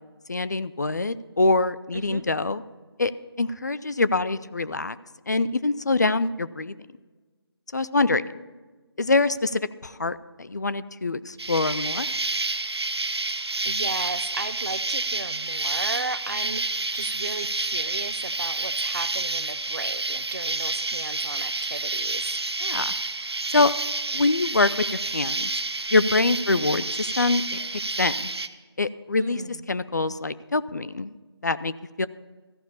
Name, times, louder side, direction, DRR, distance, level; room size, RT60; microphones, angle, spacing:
voice 1, 0.3-2.6 3.0-3.1 3.4-5.0 5.3-6.7 7.7-8.2 9.0-12.1 22.6-22.9 23.5-23.7 24.1-25.5 25.9-27.4 27.7-28.1 28.8-31.2 31.4-32.1, left 3 dB, 40° left, 15 dB, 0.4 m, -24 dB
voice 2, 1.9-2.2 13.3-13.4 13.6-22.4 26.4-26.7 29.2-29.7, right 3 dB, 45° right, 15 dB, 0.4 m, -35 dB
Insect, 11.4-28.5, right 3 dB, 70° right, 0.8 m, -29 dB
14.0 x 7.1 x 7.0 m, 1.3 s
figure-of-eight pair, 160°, 14 cm